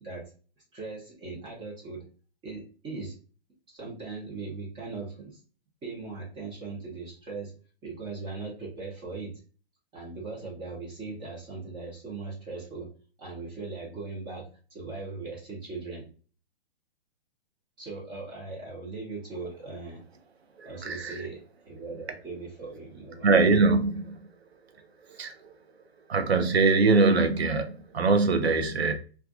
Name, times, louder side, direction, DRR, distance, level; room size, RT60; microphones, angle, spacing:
voice 1, 0.0-0.3 0.7-2.0 2.4-3.1 3.7-5.4 5.8-7.5 7.8-9.3 9.9-12.9 13.2-16.1 17.8-20.0 20.6-21.4 21.7-23.3, right 3 dB, 15° right, -4 dB, 0.6 m, -39 dB
voice 2, 20.6-21.2 23.2-24.2 25.2-25.3 26.1-28.9, right 3 dB, 85° right, 6 dB, 0.6 m, -23 dB
2.4 x 2.2 x 2.3 m, 0.38 s
figure-of-eight pair, 120°, 31 cm